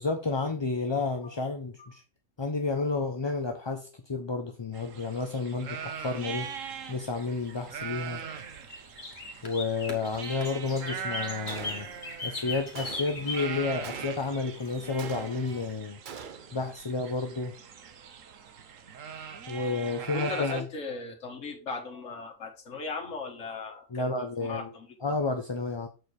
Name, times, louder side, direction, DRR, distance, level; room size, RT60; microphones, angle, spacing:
voice 1, 0.0-2.0 2.4-6.5 6.9-8.2 9.4-11.9 12.2-16.0 16.5-17.5 19.5-20.6 23.9-24.7 25.0-25.9, left 3 dB, 25° left, 3 dB, 0.6 m, -31 dB
sound 1, 4.7-20.6, right 7 dB, 80° right, 1.3 m, -41 dB
sound 2, 5.9-15.7, left 3 dB, 50° left, 2.0 m, -41 dB
Gunshot gunfire, 11.5-12.2 12.8-13.3 13.8-14.5 15.0-15.7 16.1-16.6, right 6 dB, 45° right, 0.7 m, -43 dB
voice 2, 20.1-24.1 24.4-25.2, left 4 dB, 70° left, 1 dB, 1.8 m, -38 dB
7.9 x 4.6 x 4.7 m, 0.33 s
omnidirectional pair, 1.3 m